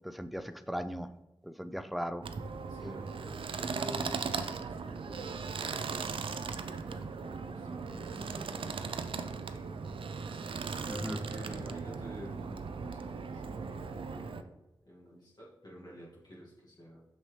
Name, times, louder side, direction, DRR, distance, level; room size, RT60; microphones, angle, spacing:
voice 1, 0.0-1.1 1.4-2.3 10.9-11.2, equal, ahead, 10 dB, 0.4 m, -37 dB
sound 1, 2.2-14.4, right 5 dB, 85° right, 0.4 m, -38 dB
voice 2, 2.7-10.2 11.1-14.5 14.9-17.0, equal, 50° left, -6 dB, 2.0 m, -50 dB
6.1 x 5.7 x 3.2 m, 1.0 s
wide cardioid pair, 80°, 9 cm